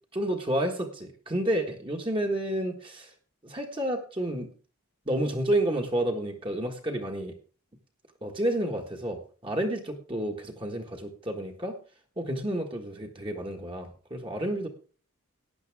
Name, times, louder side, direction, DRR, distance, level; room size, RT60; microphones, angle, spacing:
voice 1, 0.1-3.1 3.4-4.5 5.0-7.4 8.2-11.8 12.2-14.7, right 1 dB, 25° right, 2 dB, 1.5 m, -30 dB
15.0 x 10.0 x 3.5 m, 0.38 s
head